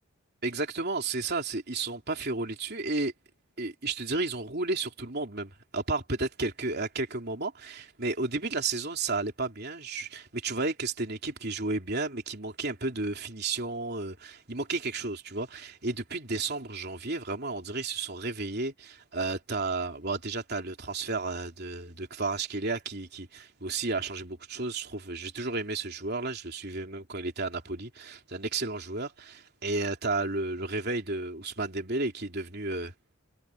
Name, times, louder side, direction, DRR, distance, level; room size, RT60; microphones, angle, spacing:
voice 1, 0.4-3.1 3.6-32.9, right 3 dB, 50° right, 3.4 m, -32 dB
head